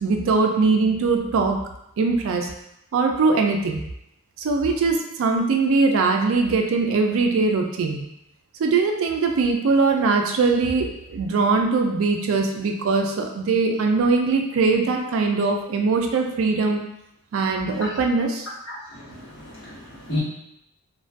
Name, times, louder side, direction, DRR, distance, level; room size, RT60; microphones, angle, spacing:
voice 1, 0.0-1.6 2.0-2.5 2.9-3.8 4.4-8.0 8.6-16.8 17.3-18.5, right 4 dB, 65° right, 2 dB, 0.3 m, -21 dB
voice 2, 18.7-20.2, left 1 dB, 60° left, -8 dB, 1.0 m, -32 dB
2.3 x 2.2 x 2.4 m, 0.80 s
head